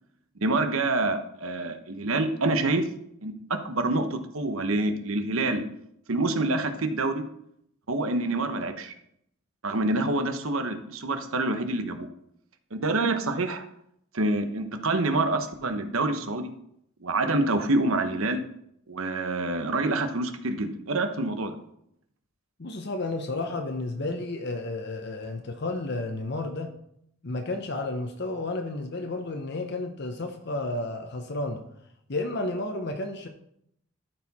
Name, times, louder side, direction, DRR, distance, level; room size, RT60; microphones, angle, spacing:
voice 1, 0.4-2.9 3.2-5.6 6.1-7.2 7.9-8.9 9.6-12.1 12.7-13.7 14.1-16.5 17.0-18.4 18.9-21.6, right 2 dB, 75° right, 7 dB, 1.0 m, -27 dB
voice 2, 22.6-26.7 27.2-31.6 32.1-33.3, left 2 dB, 50° left, 5 dB, 0.8 m, -32 dB
13.0 x 4.7 x 4.2 m, 0.73 s
head